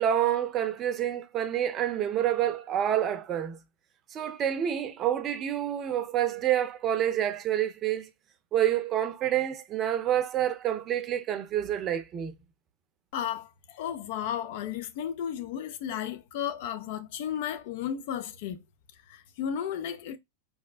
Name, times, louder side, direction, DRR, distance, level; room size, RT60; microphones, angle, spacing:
voice 1, 0.0-3.6 4.1-8.1 8.5-12.3, right 10 dB, 35° right, 0.6 m, -28 dB
voice 2, 13.1-18.6 19.1-20.2, left 9 dB, 55° left, 0.6 m, -34 dB
4.7 x 2.1 x 2.3 m
hypercardioid pair, 100°, 0 cm